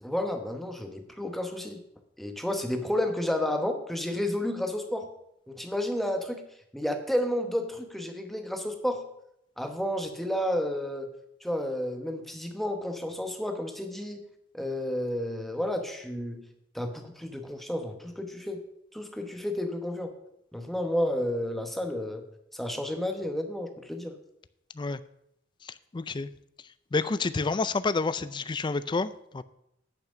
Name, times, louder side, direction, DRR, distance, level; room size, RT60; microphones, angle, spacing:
voice 1, 0.0-1.8 2.2-5.1 5.5-6.4 6.7-9.0 9.6-11.1 11.4-14.2 14.5-16.4 16.7-18.6 18.9-20.1 20.5-22.2 22.5-24.1, left 1 dB, ahead, 5 dB, 0.9 m, -31 dB
voice 2, 25.6-26.3 26.9-29.4, left 3 dB, 25° left, 15 dB, 0.4 m, -29 dB
10.5 x 5.8 x 6.3 m, 0.78 s
head